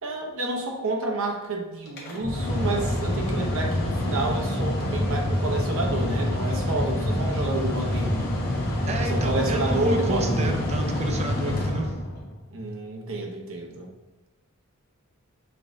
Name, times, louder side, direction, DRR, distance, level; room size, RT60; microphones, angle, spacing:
voice 1, 0.0-8.2 9.0-10.6 12.5-13.9, right 2 dB, 65° right, 1 dB, 0.9 m, -29 dB
Mechanical fan, 1.9-12.4, left 1 dB, 50° left, 1.2 m, -27 dB
voice 2, 8.8-11.9, right 1 dB, 30° right, 3 dB, 0.5 m, -30 dB
5.5 x 3.6 x 2.7 m, 1.1 s
head